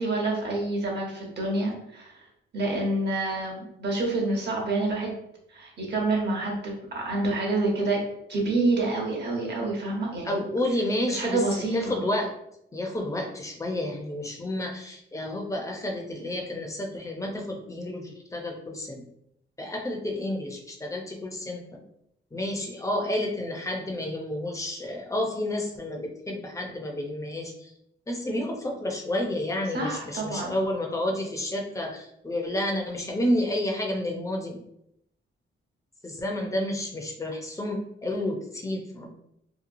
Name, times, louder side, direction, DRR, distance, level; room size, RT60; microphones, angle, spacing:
voice 1, 0.0-2.3 2.5-5.1 5.5-8.0 8.3-10.4 11.1-12.0 29.7-30.6, right 2 dB, 55° right, -1 dB, 0.9 m, -27 dB
voice 2, 10.2-11.4 11.7-12.3 12.7-19.0 19.6-21.8 22.3-27.7 28.1-34.6 36.0-39.1, left 1 dB, 15° left, 2 dB, 0.5 m, -30 dB
2.8 x 2.2 x 2.6 m, 0.76 s
cardioid pair, 95°, 21 cm